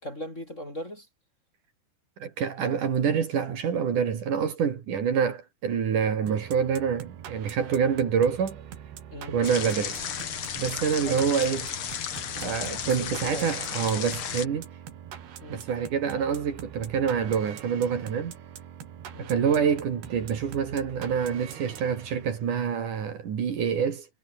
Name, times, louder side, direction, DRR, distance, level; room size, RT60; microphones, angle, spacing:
voice 1, 0.0-1.1 9.1-9.4 11.1-11.4 12.4-13.5 15.4-15.6 19.1-19.3, equal, 15° left, 5.7 m, -39 dB
voice 2, 2.2-8.6 9.3-10.0 10.6-11.7 12.4-14.7 15.5-18.3 19.2-24.1, right 7 dB, 55° right, 3.7 m, -26 dB
sound 1, 6.3-22.6, right 9 dB, 75° right, 4.5 m, -44 dB
sound 2, 9.4-14.4, left 9 dB, 55° left, 1.6 m, -34 dB
omnidirectional pair, 4.6 m